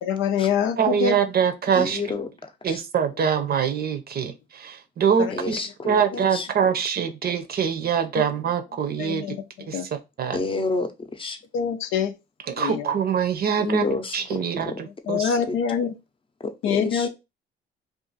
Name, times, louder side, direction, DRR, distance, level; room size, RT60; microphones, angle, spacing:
voice 1, 0.0-1.1 9.0-9.4 9.7-9.9 11.5-12.1 12.6-12.8 15.1-16.0 16.6-17.1, left 7 dB, 80° left, 0.5 m, -24 dB
voice 2, 0.8-2.1 2.6-5.6 5.8-9.4 9.7-10.4 12.4-13.9 14.1-15.4, right 7 dB, 50° right, 0.6 m, -24 dB
voice 3, 1.8-2.3 2.7-2.8 5.3-6.0 6.3-6.5 10.3-11.4 13.6-14.4 14.7-14.8 15.2-15.6 16.4-17.1, left 3 dB, 25° left, 0.6 m, -29 dB
2.5 x 2.5 x 3.9 m
cardioid pair, 90°, 20 cm